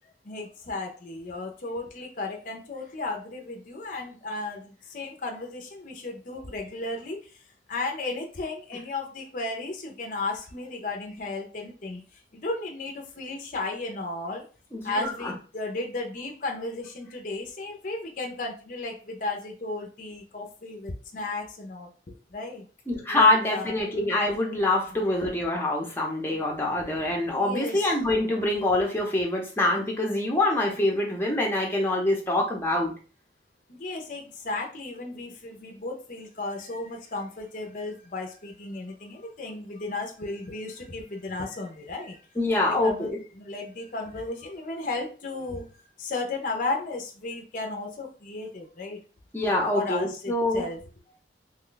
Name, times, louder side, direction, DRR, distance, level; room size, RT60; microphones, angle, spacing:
voice 1, 0.0-7.4 7.7-14.4 14.8-22.7 23.1-24.1 26.3-26.7 27.2-27.9 33.7-42.2 42.7-43.1 43.4-49.0 49.7-50.8, left 2 dB, 45° left, 1 dB, 0.6 m, -34 dB
voice 2, 14.7-15.3 22.9-32.9 42.4-43.2 49.3-50.6, left 2 dB, 10° left, -1 dB, 0.7 m, -25 dB
3.1 x 2.3 x 3.8 m, 0.37 s
head